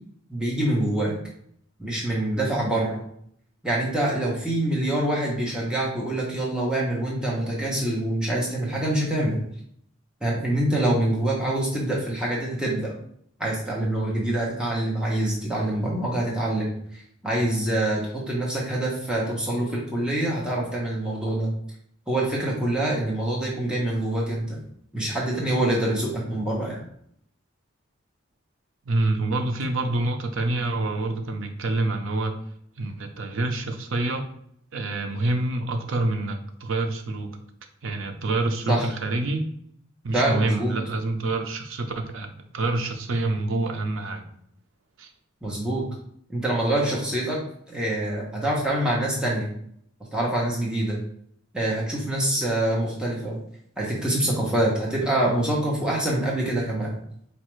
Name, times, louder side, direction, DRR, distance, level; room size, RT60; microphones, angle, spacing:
voice 1, 0.3-1.2 1.8-3.0 3.6-9.4 10.2-12.9 13.4-21.5 22.1-24.6 24.9-26.8 38.7-38.9 40.1-40.7 45.4-45.9 46.3-47.4 47.7-49.5 50.1-51.0 51.5-53.4 53.8-57.0, right 1 dB, 5° right, -5 dB, 0.8 m, -25 dB
voice 2, 28.9-32.3 32.8-34.3 34.7-37.4 37.8-39.5 40.0-44.2 45.0-45.1, right 2 dB, 70° right, 5 dB, 0.5 m, -27 dB
4.3 x 2.4 x 3.0 m, 0.67 s
head